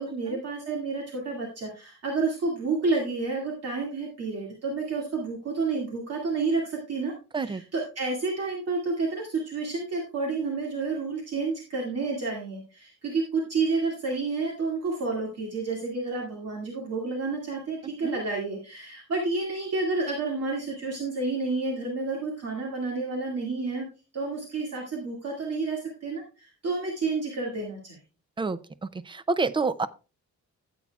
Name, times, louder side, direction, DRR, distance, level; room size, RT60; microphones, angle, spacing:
voice 1, 0.0-23.9 24.1-28.0, right 3 dB, 55° right, -1 dB, 2.2 m, -30 dB
voice 2, 29.1-29.9, right 4 dB, 15° right, 15 dB, 0.4 m, -27 dB
14.0 x 8.5 x 2.3 m, 0.32 s
wide cardioid pair, 170°, 30 cm